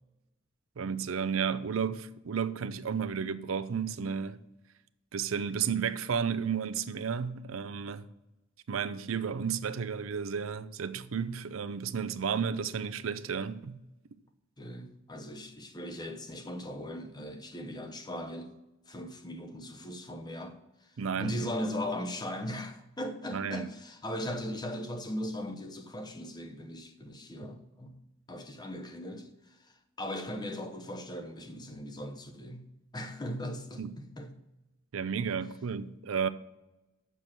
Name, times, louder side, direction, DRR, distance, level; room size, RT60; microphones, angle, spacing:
voice 1, 0.8-4.4 5.1-8.1 8.7-13.8 21.0-21.3 23.3-23.7 33.8-33.9 34.9-36.3, right 6 dB, 90° right, 0.5 m, -32 dB
voice 2, 14.6-18.5 18.9-20.6 21.2-28.0 28.3-29.7 30.0-32.7 32.9-34.3, left 1 dB, 20° left, 0.8 m, -38 dB
6.9 x 6.1 x 7.4 m
head